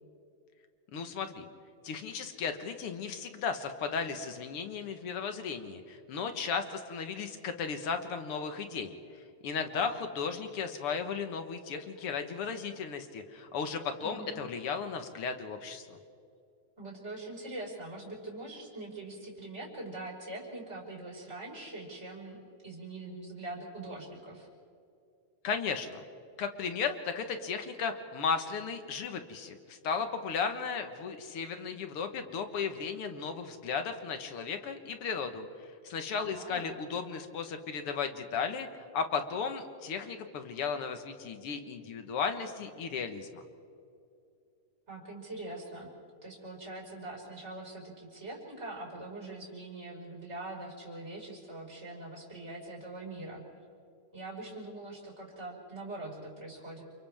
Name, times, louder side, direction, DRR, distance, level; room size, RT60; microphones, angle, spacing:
voice 1, 0.9-1.5 1.8-8.9 9.4-15.8 25.4-26.0 26.4-35.5 35.8-38.7 38.9-43.3, left 5 dB, 55° left, 7 dB, 1.8 m, -35 dB
voice 2, 9.7-10.0 14.0-14.4 16.8-22.4 22.6-24.5 36.3-36.8 44.9-45.9 46.2-53.4 54.1-56.8, right 2 dB, 20° right, -3 dB, 5.2 m, -43 dB
29.0 x 28.5 x 3.6 m, 2.5 s
omnidirectional pair, 3.6 m